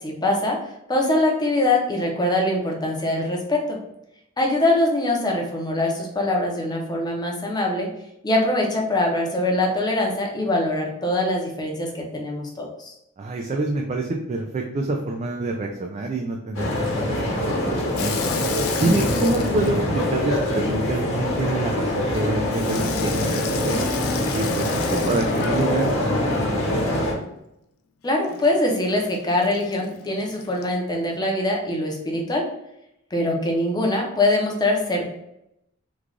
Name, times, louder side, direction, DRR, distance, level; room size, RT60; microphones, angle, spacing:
voice 1, 0.0-0.6 0.9-3.8 4.4-7.9 8.2-12.9 28.0-32.5 33.1-35.0, left 1 dB, 20° left, 0 dB, 0.6 m, -23 dB
voice 2, 13.2-18.3 18.8-23.9 24.3-27.0, right 2 dB, 30° right, 2 dB, 0.3 m, -27 dB
sound 1, 16.5-27.1, left 1 dB, 70° left, 1.0 m, -24 dB
Water tap faucet / Sink (filling or washing), 17.9-20.9 22.5-26.2 28.2-30.8, left 6 dB, 85° left, 0.4 m, -34 dB
3.1 x 2.3 x 3.7 m, 0.83 s
head